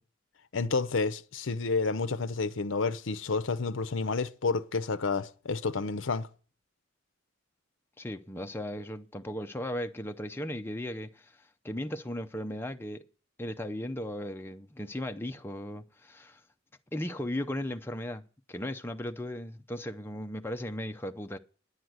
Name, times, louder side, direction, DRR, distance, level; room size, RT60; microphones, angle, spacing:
voice 1, 0.5-6.3, left 4 dB, 65° left, 0.6 m, -30 dB
voice 2, 8.0-13.0 13.4-16.4 16.9-18.2 18.5-21.4, left 1 dB, 10° left, 0.6 m, -36 dB
10.5 x 7.6 x 7.9 m
head